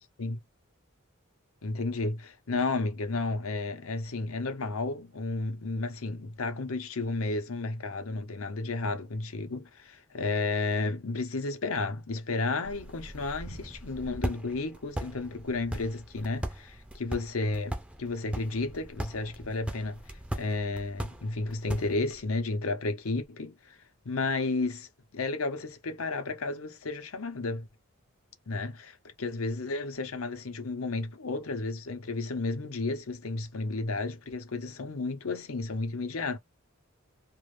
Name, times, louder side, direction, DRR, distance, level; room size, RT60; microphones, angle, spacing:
voice 1, 1.6-23.8 24.0-27.7 28.5-36.4, left 3 dB, 90° left, 0.8 m, -32 dB
sound 1, 12.6-22.2, right 1 dB, 5° right, 0.4 m, -39 dB
2.5 x 2.4 x 3.2 m
head